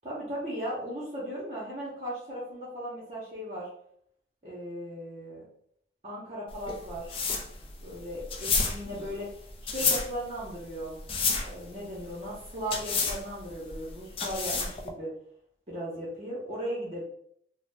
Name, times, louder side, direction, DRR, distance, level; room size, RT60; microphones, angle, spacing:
voice 1, 0.0-3.7 4.4-5.4 6.0-7.1 7.8-9.3 9.6-11.0 11.4-15.1 15.7-17.0, equal, 35° right, -7 dB, 0.6 m, -37 dB
sound 1, 6.5-14.9, left 4 dB, 30° left, 0.3 m, -31 dB
2.6 x 2.0 x 3.2 m, 0.67 s
head